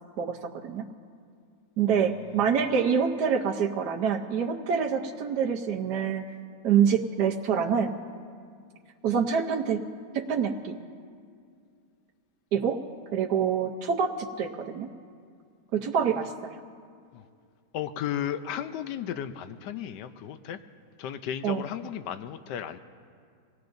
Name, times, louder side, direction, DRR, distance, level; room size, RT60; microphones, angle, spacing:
voice 1, 0.2-0.8 1.8-6.2 6.6-7.9 9.0-9.8 10.1-10.8 12.5-12.8 13.1-14.9 15.7-16.5 21.4-21.6, right 7 dB, 80° right, 1 dB, 1.4 m, -26 dB
voice 2, 1.9-2.5 17.1-17.3 17.7-20.6 21.0-22.8, left 9 dB, 90° left, 10 dB, 1.2 m, -35 dB
26.0 x 18.5 x 2.6 m, 2.2 s
omnidirectional pair, 1.8 m